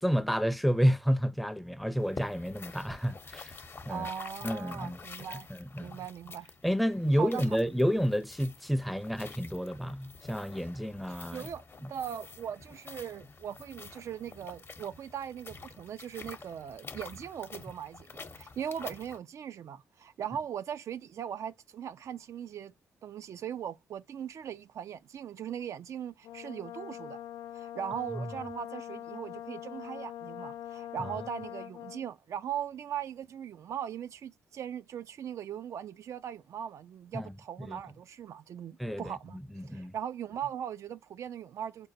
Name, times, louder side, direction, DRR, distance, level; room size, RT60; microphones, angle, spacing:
voice 1, 0.0-3.5 3.8-4.1 4.4-5.0 5.5-5.9 6.6-11.5 11.8-11.9 28.1-28.3 37.1-37.3 37.7-37.8 38.8-39.2 39.6-39.9, equal, ahead, 0.5 m, -30 dB
sound 1, 2.0-19.2, left 4 dB, 45° left, 0.8 m, -48 dB
voice 2, 3.9-5.5 5.8-6.5 7.1-7.5 11.1-11.6 11.9-22.7 23.0-27.2 27.5-41.9, right 9 dB, 65° right, 0.4 m, -39 dB
Brass instrument, 26.2-32.1, left 12 dB, 85° left, 0.4 m, -43 dB
5.1 x 2.2 x 2.7 m
supercardioid pair, 55°, 6 cm